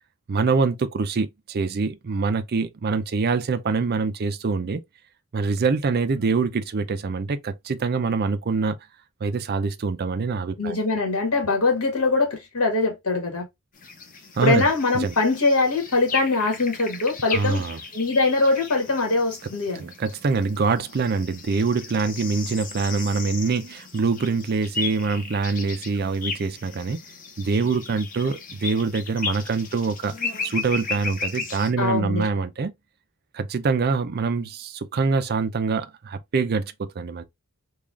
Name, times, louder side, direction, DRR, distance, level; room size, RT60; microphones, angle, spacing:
voice 1, 0.3-4.8 5.3-8.8 9.2-10.8 14.4-14.7 14.9-15.1 17.3-17.8 19.7-27.0 27.4-30.1 30.4-32.7 33.3-37.2, right 4 dB, 45° right, 0.4 m, -24 dB
voice 2, 10.6-13.4 14.4-17.6 17.9-19.8 31.8-32.2, left 3 dB, 80° left, 1.7 m, -22 dB
sound 1, 13.8-31.7, left 5 dB, 40° left, 0.9 m, -35 dB
3.7 x 2.4 x 3.2 m
head